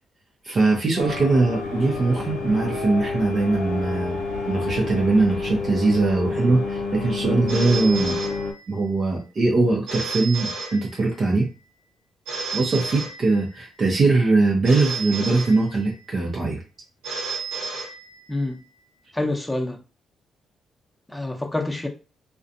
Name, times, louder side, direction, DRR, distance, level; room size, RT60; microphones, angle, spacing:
voice 1, 0.4-4.2 4.5-8.2 8.7-11.5 12.5-16.6, right 3 dB, 50° right, 0.6 m, -21 dB
sound 1, 1.0-8.5, left 3 dB, 90° left, 0.4 m, -29 dB
Telephone, 7.5-9.0 9.9-11.4 12.3-13.8 14.6-16.1 17.0-18.5, right 4 dB, 85° right, 0.9 m, -32 dB
voice 2, 18.3-18.6 19.1-19.8 21.1-21.9, left 2 dB, 15° left, 0.7 m, -27 dB
2.4 x 2.2 x 2.6 m
hypercardioid pair, 45°, 0 cm